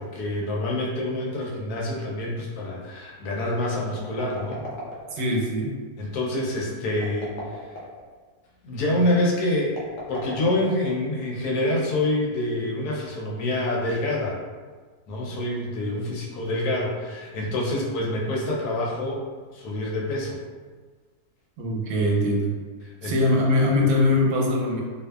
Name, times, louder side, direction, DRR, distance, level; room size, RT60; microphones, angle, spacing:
voice 1, 0.0-4.6 6.0-7.8 8.6-14.4 15.1-19.2 19.5-20.4 22.8-23.2, left 1 dB, 85° left, -3 dB, 1.2 m, -27 dB
sound 1, 4.0-5.4 6.9-8.1 9.7-11.2, left 1 dB, 60° left, 0.9 m, -37 dB
voice 2, 5.1-5.7 21.6-22.5 23.0-24.8, left 1 dB, 90° right, -2 dB, 1.1 m, -22 dB
2.5 x 2.4 x 2.2 m, 1.4 s
omnidirectional pair, 1.6 m